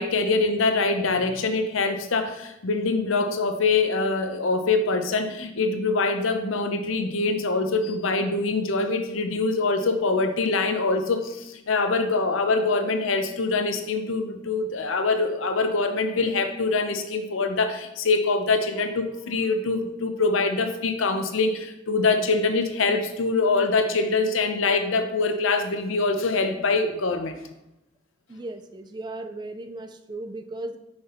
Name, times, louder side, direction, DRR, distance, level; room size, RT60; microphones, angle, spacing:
voice 1, 0.0-27.4, left 3 dB, 80° left, 7 dB, 0.7 m, -24 dB
voice 2, 28.3-30.8, right 2 dB, 20° right, 8 dB, 0.3 m, -36 dB
6.3 x 5.7 x 2.9 m, 0.88 s
head